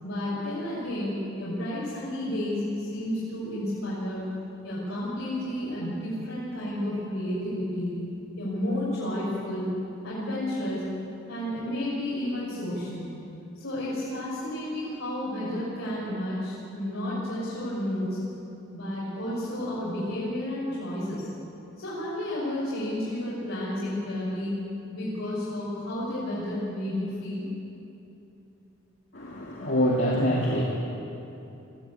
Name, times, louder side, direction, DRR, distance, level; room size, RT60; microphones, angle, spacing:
voice 1, 0.0-4.2 4.6-7.9 8.4-9.7 10.0-10.8 11.3-13.1 13.6-18.2 18.7-21.2 21.8-24.5 24.9-27.4, left 1 dB, 80° left, -9 dB, 5.9 m, -31 dB
voice 2, 29.1-30.6, equal, 60° left, -4 dB, 2.5 m, -25 dB
22.0 x 14.5 x 8.5 m, 2.9 s
head